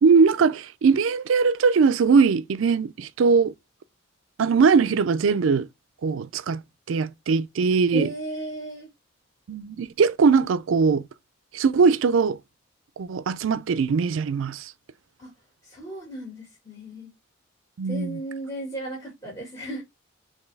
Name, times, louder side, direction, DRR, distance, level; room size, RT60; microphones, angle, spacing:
voice 1, 0.0-3.5 4.4-5.7 6.0-6.6 6.9-8.1 9.5-11.0 11.5-12.4 13.0-14.7 17.8-18.2, right 5 dB, 70° right, 0.4 m, -20 dB
voice 2, 7.9-8.9 15.2-15.3 15.6-17.1 17.9-19.8, right 2 dB, 20° left, 1.8 m, -35 dB
4.4 x 3.1 x 3.2 m
head